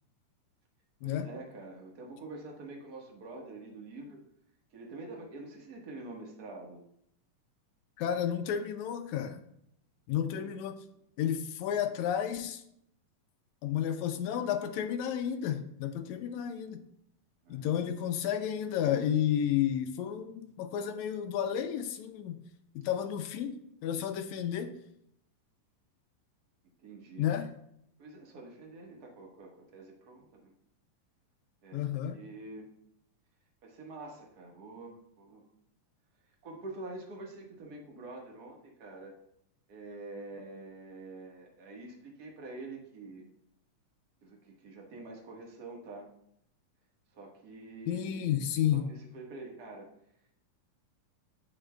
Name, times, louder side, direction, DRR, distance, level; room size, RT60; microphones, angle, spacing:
voice 1, 1.0-4.2 4.7-6.8 10.1-10.6 17.4-17.9 26.8-27.3 28.0-30.5 31.6-32.7 33.6-35.5 36.4-39.1 39.7-43.3 44.2-46.1 47.1-49.9, right 2 dB, 45° right, 0 dB, 1.3 m, -46 dB
voice 2, 8.0-9.4 10.1-10.7 11.2-12.6 13.6-16.8 17.5-22.4 22.8-24.8 27.2-27.5 31.7-32.2 47.9-48.9, left 9 dB, 85° left, 6 dB, 1.7 m, -31 dB
8.8 x 8.2 x 2.3 m, 0.72 s
omnidirectional pair, 3.9 m